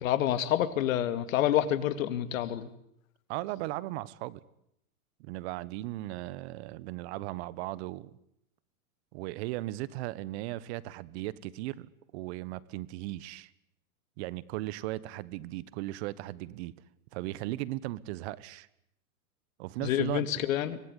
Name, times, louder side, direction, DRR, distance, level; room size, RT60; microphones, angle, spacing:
voice 1, 0.0-2.7 19.8-20.8, left 11 dB, 65° left, 12 dB, 2.5 m, -28 dB
voice 2, 3.3-4.4 5.2-8.1 9.1-13.5 14.2-16.7 17.1-18.7 19.6-20.3, right 17 dB, 45° right, 19 dB, 1.3 m, -37 dB
25.0 x 19.5 x 9.9 m, 0.76 s
hypercardioid pair, 130°, 44 cm